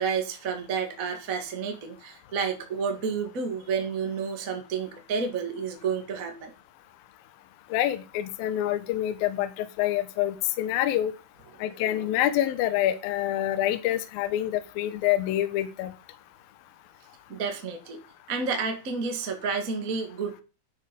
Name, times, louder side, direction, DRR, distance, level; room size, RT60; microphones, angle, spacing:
voice 1, 0.0-6.5 17.3-18.0 18.3-20.4, right 5 dB, 60° right, 5 dB, 0.8 m, -30 dB
voice 2, 7.7-11.1 11.6-15.9, left 13 dB, 70° left, 10 dB, 2.3 m, -26 dB
11.5 x 7.3 x 5.3 m, 0.33 s
omnidirectional pair, 5.3 m